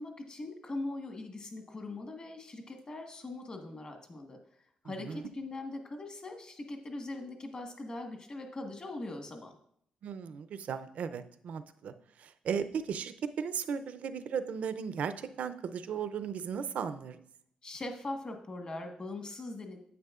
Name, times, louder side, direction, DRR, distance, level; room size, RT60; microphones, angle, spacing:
voice 1, 0.0-4.4 4.8-9.5 17.6-19.8, left 2 dB, 35° left, 3 dB, 1.4 m, -41 dB
voice 2, 4.8-5.2 10.0-11.9 12.2-17.2, right 7 dB, 70° right, 11 dB, 0.5 m, -36 dB
9.3 x 7.8 x 2.4 m, 0.68 s
cardioid pair, 85°, 2 cm